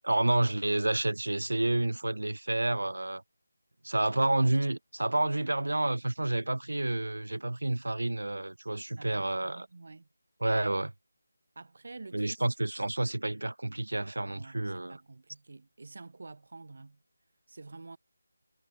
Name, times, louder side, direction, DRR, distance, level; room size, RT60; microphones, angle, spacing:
voice 1, 0.0-3.2 3.8-9.7 10.4-10.9 12.1-15.0, right 2 dB, 90° right, 0.7 m, -29 dB
voice 2, 9.0-10.1 11.5-12.4 14.3-17.0 17.5-18.0, right 3 dB, 60° right, 6.6 m, -48 dB
figure-of-eight pair, 165°, 0 cm